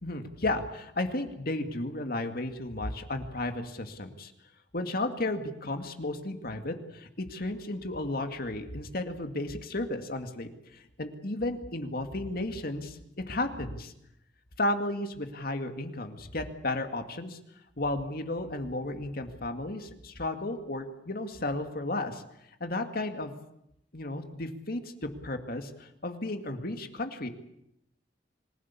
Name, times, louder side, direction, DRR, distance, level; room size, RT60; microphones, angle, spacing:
voice 1, 0.0-4.3 4.7-13.0 13.3-13.9 14.6-17.4 17.8-22.2 22.6-23.3 23.9-27.3, left 2 dB, 55° left, 6 dB, 2.3 m, -33 dB
25.5 x 16.5 x 8.5 m, 0.79 s
head